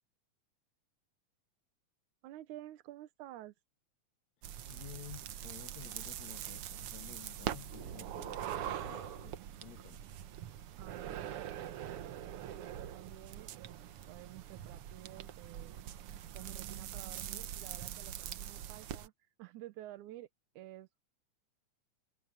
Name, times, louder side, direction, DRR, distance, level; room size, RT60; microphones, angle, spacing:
voice 1, 2.2-3.6 10.8-13.8 14.1-15.8 16.1-19.1 19.4-20.3 20.6-21.0, right 14 dB, 85° right, 2.4 m, -51 dB
sound 1, 4.4-19.1, right 11 dB, 65° right, 1.5 m, -43 dB
voice 2, 4.7-10.1, left 13 dB, 65° left, 2.4 m, -52 dB
omnidirectional pair, 3.5 m